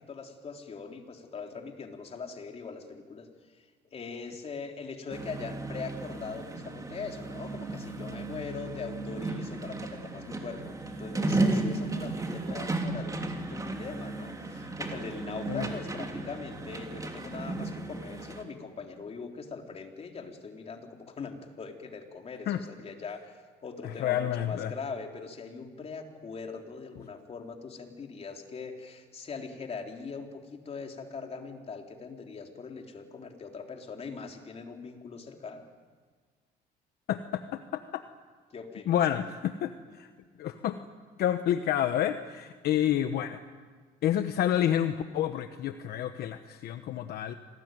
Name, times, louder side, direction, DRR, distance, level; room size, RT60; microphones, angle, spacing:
voice 1, 0.1-3.3 3.6-23.3 23.6-35.6 38.5-39.0, left 5 dB, 35° left, 3 dB, 3.6 m, -41 dB
sound 1, 5.1-18.4, right 2 dB, 20° right, 3.1 m, -34 dB
voice 2, 23.8-24.7 37.1-38.0 38.9-40.1 40.4-40.8 41.2-43.4 44.0-47.3, left 11 dB, 70° left, 9 dB, 1.1 m, -29 dB
27.0 x 19.0 x 9.3 m, 1.5 s
cardioid pair, 110°, 17 cm